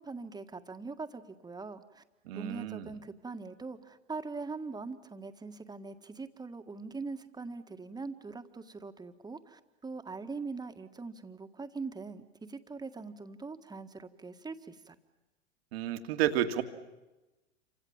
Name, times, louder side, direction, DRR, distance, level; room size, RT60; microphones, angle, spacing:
voice 1, 0.0-2.0 2.4-15.0, right 4 dB, 10° right, 8 dB, 1.8 m, -42 dB
voice 2, 2.3-2.9 15.7-16.6, right 12 dB, 60° right, 7 dB, 2.3 m, -31 dB
28.0 x 25.5 x 7.3 m, 1.1 s
hypercardioid pair, 95°, 34 cm